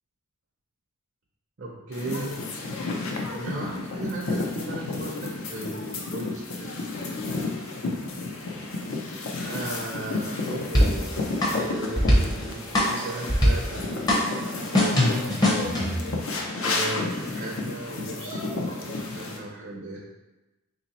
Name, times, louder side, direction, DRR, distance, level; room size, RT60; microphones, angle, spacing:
voice 1, 1.6-2.3 3.3-6.8 9.4-11.1 11.5-15.6 16.5-20.0, right 2 dB, 50° right, -3 dB, 0.5 m, -36 dB
sound 1, 1.9-19.4, left 3 dB, 70° left, 0.5 m, -32 dB
sound 2, 10.7-16.1, left 1 dB, 20° left, 0.7 m, -23 dB
3.0 x 2.8 x 4.0 m, 1.0 s
head